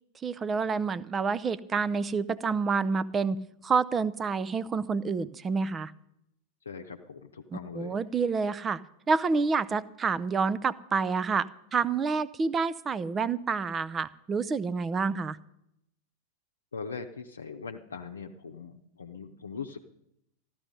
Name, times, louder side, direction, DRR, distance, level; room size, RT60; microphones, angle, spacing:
voice 1, 0.2-5.9 7.5-8.8 9.1-15.4, right 5 dB, 20° right, 17 dB, 0.6 m, -28 dB
voice 2, 6.6-7.9 16.7-19.8, left 5 dB, 70° left, 3 dB, 0.8 m, -41 dB
14.5 x 12.0 x 5.3 m, 0.78 s
figure-of-eight pair, 90°, 0 cm